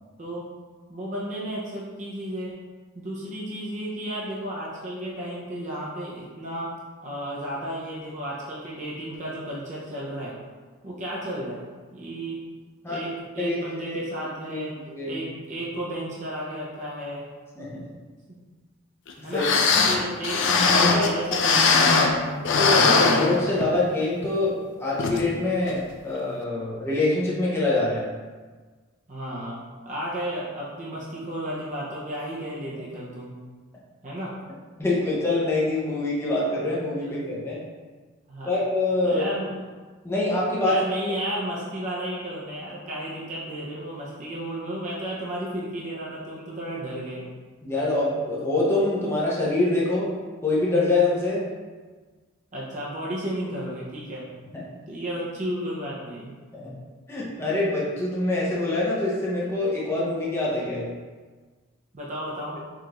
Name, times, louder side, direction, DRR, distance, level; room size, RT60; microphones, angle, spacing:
voice 1, 0.9-2.5 2.9-6.7 7.0-10.3 10.8-11.6 11.9-12.4 12.9-14.7 15.0-17.3 18.3-18.4 19.2-19.5 19.9-22.3 29.1-33.3 34.0-34.3 37.0-37.1 38.3-38.5 39.0-39.5 40.6-47.3 52.5-54.3 54.9-56.3 61.9-62.6, right 1 dB, 35° right, -6 dB, 0.6 m, -33 dB
voice 2, 14.5-15.2 17.6-17.8 19.3-19.5 19.7-19.9 20.8-21.4 22.5-24.5 24.8-28.1 34.8-37.6 38.5-39.2 40.0-40.8 47.6-50.1 50.4-51.4 54.5-54.6 56.5-56.7 57.1-60.9, left 2 dB, 10° left, -6 dB, 0.6 m, -25 dB
sound 1, 19.1-19.2 19.4-22.2 22.4-23.8 24.2-24.3 25.0-25.2 25.7-25.8, left 4 dB, 60° left, 0.4 m, -20 dB
4.7 x 2.4 x 3.0 m, 1.4 s
head